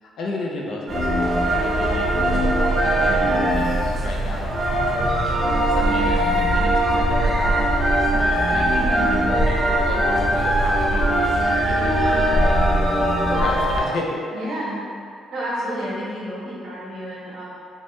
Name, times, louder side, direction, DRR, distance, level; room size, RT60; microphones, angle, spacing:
voice 1, 0.0-5.1 5.7-13.0 13.3-14.2, left 2 dB, 70° left, -2 dB, 0.5 m, -33 dB
sound 1, 0.9-13.8, right 1 dB, 45° right, 0.8 m, -20 dB
voice 2, 8.7-9.3 14.3-14.8 15.3-17.4, equal, 70° right, -8 dB, 1.1 m, -30 dB
3.4 x 2.1 x 3.0 m, 2.3 s
cardioid pair, 90°, 0 cm